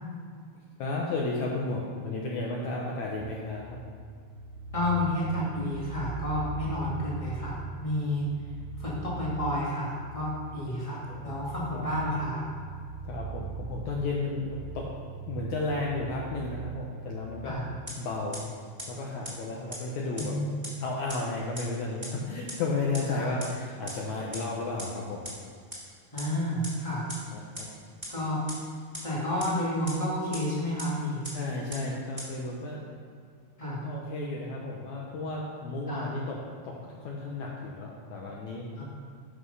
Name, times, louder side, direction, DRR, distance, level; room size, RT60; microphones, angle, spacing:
voice 1, 0.8-3.8 11.1-11.4 11.7-11.9 13.0-14.9 15.3-17.6 18.0-18.4 18.9-20.4 20.8-25.3 27.3-27.7 31.3-32.9 33.6-36.4 36.6-38.8, left 3 dB, 75° left, -2 dB, 1.8 m, -33 dB
sound 1, 3.2-17.5, right 5 dB, 90° right, 1.7 m, -41 dB
voice 2, 4.7-8.2 8.8-12.4 17.4-17.6 20.2-20.6 23.1-23.4 26.1-27.1 28.1-28.4 29.0-31.2 33.6-33.8 35.9-36.1 38.8-38.9, left 1 dB, 30° left, -7 dB, 0.6 m, -30 dB
sound 2, 17.9-18.0 18.3-18.4 18.8-18.9 19.2-19.3 19.7-19.8 20.2-20.3 20.6-20.7 21.1-21.2 21.6-21.7 22.0-22.1 22.5-22.6 22.9-23.0 23.4-23.5 23.9-24.0 24.3-24.4 24.8-24.9 25.2-25.3 25.7-25.8 26.2-26.3 26.6-26.7 27.1-27.2 27.5-27.6 28.0-28.1 28.5-28.6 28.9-29.0 29.4-29.5 29.9-30.0 30.3-30.4 30.8-30.9 31.2-31.3 31.7-31.8 32.2-32.3, equal, 10° right, 1.9 m, -37 dB
11.5 x 6.0 x 5.5 m, 2.1 s
omnidirectional pair, 4.5 m